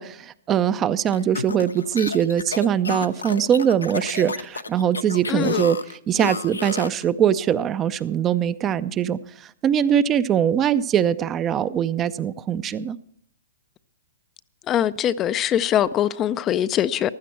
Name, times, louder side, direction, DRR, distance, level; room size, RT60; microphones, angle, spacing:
voice 1, 0.0-13.0, right 9 dB, 25° right, 0.5 m, -22 dB
sound 1, 1.1-7.0, left 4 dB, 90° left, 0.7 m, -31 dB
voice 2, 5.3-5.6 14.7-17.1, left 10 dB, 25° left, 0.4 m, -22 dB
15.5 x 12.0 x 4.5 m
hypercardioid pair, 120°, 0 cm